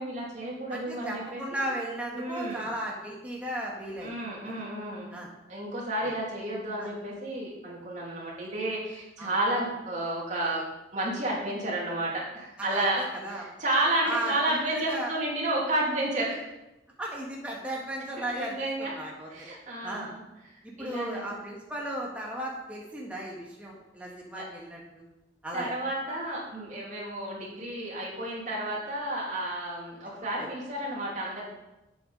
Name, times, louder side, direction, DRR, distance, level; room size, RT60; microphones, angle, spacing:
voice 1, 0.0-1.6 2.1-2.7 4.0-5.2 5.5-10.7 10.9-13.0 13.3-16.5 18.2-18.9 19.3-20.2 20.8-21.4 24.4-24.5 25.5-31.4, right 1 dB, 45° right, -4 dB, 2.9 m, -31 dB
voice 2, 0.7-4.2 5.1-5.3 6.0-6.1 6.8-6.9 9.2-9.3 12.6-13.4 14.0-15.1 17.0-19.5 19.8-20.1 20.6-25.0 25.4-25.7 30.4-30.5, right 1 dB, 10° right, -3 dB, 1.5 m, -36 dB
8.1 x 7.9 x 5.2 m, 0.97 s
head